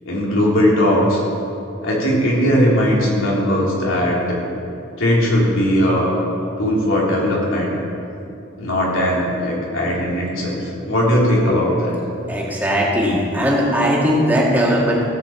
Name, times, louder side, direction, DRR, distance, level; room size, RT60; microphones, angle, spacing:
voice 1, 0.0-1.2 1.8-4.4 5.0-6.2 6.6-7.7 8.5-12.0, equal, 80° left, -4 dB, 3.4 m, -18 dB
voice 2, 12.3-15.1, equal, 10° right, -5 dB, 2.2 m, -18 dB
16.5 x 6.1 x 7.2 m, 2.7 s
head